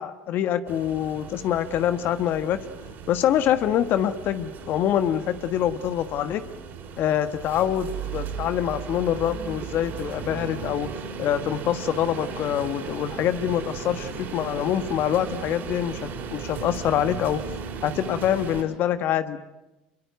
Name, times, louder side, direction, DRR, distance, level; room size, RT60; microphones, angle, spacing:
voice 1, 0.0-2.6 3.1-6.4 7.0-10.9 11.2-17.4 17.8-19.4, left 10 dB, 50° left, 11 dB, 1.4 m, -25 dB
sound 1, 0.7-18.6, right 6 dB, 45° right, 6.2 m, -36 dB
27.0 x 23.0 x 9.3 m, 1.0 s
hypercardioid pair, 75°, 5 cm